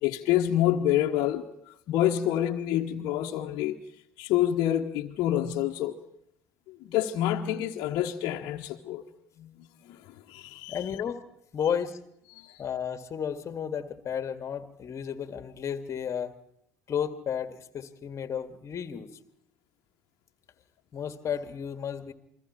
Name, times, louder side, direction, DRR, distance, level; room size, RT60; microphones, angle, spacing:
voice 1, 0.0-1.5 1.9-3.8 4.2-6.0 6.7-9.0 9.4-10.8 12.3-12.6, left 12 dB, 55° left, 1.4 m, -27 dB
voice 2, 10.7-11.2 11.5-12.0 12.6-16.3 16.9-19.1 20.9-22.1, left 8 dB, 40° left, 1.9 m, -33 dB
28.5 x 22.0 x 4.4 m
hypercardioid pair, 65°, 8 cm